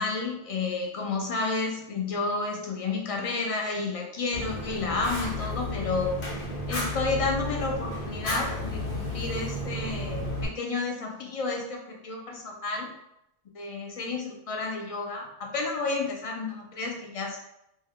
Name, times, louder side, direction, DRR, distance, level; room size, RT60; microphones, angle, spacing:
voice 1, 0.0-6.2 6.7-12.9 13.5-17.4, left 3 dB, 55° left, 0 dB, 0.3 m, -31 dB
Fire, 4.3-10.5, left 1 dB, 80° left, 1.1 m, -32 dB
2.7 x 2.2 x 3.4 m, 0.81 s
omnidirectional pair, 1.1 m